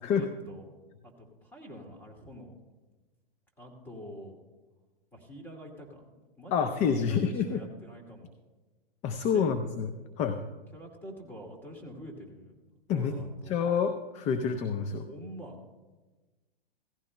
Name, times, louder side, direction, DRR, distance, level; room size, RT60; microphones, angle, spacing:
voice 1, 0.0-0.7 1.0-2.5 3.6-4.4 5.1-6.1 6.4-8.3 9.3-9.5 10.7-12.6 12.9-13.5 15.1-15.6, equal, 5° left, 1 dB, 2.3 m, -46 dB
voice 2, 6.5-7.6 9.0-9.9 10.2-10.4 12.9-13.1 13.5-15.1, left 6 dB, 25° left, 8 dB, 0.5 m, -28 dB
17.0 x 15.0 x 2.2 m, 1.2 s
hypercardioid pair, 115°, 30 cm